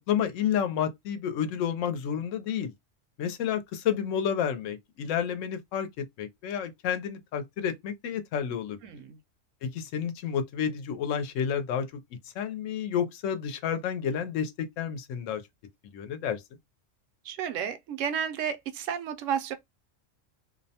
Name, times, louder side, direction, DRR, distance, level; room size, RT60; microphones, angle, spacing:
voice 1, 0.1-2.7 3.2-8.8 9.6-11.9 12.4-15.4 15.9-16.4, left 8 dB, 80° left, 1.0 m, -30 dB
voice 2, 8.8-9.2 17.3-19.5, right 8 dB, 80° right, 0.9 m, -32 dB
2.5 x 2.1 x 2.7 m
omnidirectional pair, 1.3 m